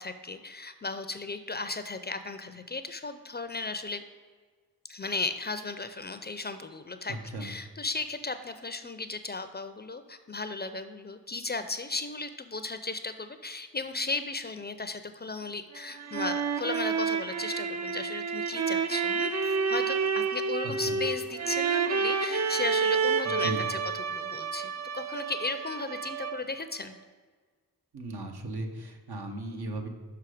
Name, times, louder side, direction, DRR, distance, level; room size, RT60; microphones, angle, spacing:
voice 1, 0.0-4.0 4.9-7.1 7.4-26.9, left 3 dB, 25° left, 10 dB, 0.5 m, -36 dB
voice 2, 7.1-7.5 20.6-21.0 23.2-23.6 27.9-29.9, right 2 dB, 70° right, 3 dB, 1.1 m, -37 dB
sound 1, 15.8-26.6, right 5 dB, 45° right, 0.5 m, -29 dB
5.8 x 5.6 x 4.9 m, 1.5 s
cardioid pair, 50°, 40 cm